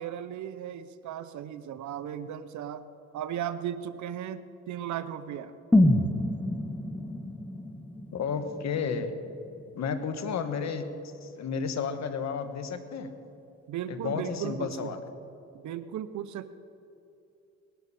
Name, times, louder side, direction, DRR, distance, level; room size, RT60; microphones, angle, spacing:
voice 1, 0.0-2.8 3.1-5.5 13.7-15.0 15.5-16.5, right 10 dB, 70° right, 13 dB, 0.8 m, -36 dB
sound 1, 5.7-9.7 10.0-10.1, left 1 dB, 5° left, 0.9 m, -27 dB
voice 2, 8.1-9.1 9.7-10.9 11.2-13.1 13.9-15.0, left 6 dB, 65° left, 8 dB, 1.3 m, -32 dB
19.5 x 11.5 x 4.3 m, 2.7 s
cardioid pair, 90°, 30 cm